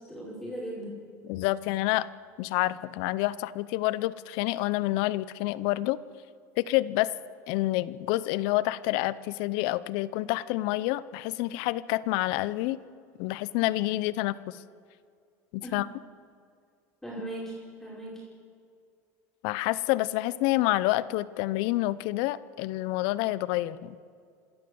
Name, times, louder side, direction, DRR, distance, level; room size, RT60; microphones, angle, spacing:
voice 1, 0.1-1.0 15.6-15.8 17.0-18.2, right 1 dB, 5° left, -5 dB, 5.2 m, -38 dB
voice 2, 1.3-2.1 2.4-6.0 6.6-7.1 7.5-12.8 13.2-14.6 15.5-15.9 19.4-24.0, left 17 dB, 65° left, 18 dB, 0.7 m, -28 dB
26.5 x 13.0 x 7.9 m, 2.2 s
supercardioid pair, 105°, 9 cm